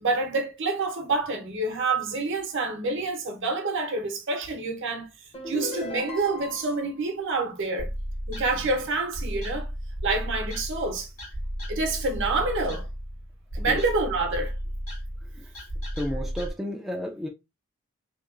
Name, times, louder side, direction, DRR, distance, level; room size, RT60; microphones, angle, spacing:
voice 1, 0.0-5.1 5.5-7.9 8.3-9.7 10.0-11.1 11.7-12.9 13.5-14.5, right 3 dB, 65° right, 0.7 m, -27 dB
sound 1, 5.3-6.8, left 1 dB, 30° left, 0.7 m, -35 dB
sound 2, 7.8-16.5, equal, 80° left, 1.5 m, -34 dB
voice 2, 15.2-15.6 15.9-17.3, equal, ahead, 0.3 m, -33 dB
2.9 x 2.2 x 2.3 m
head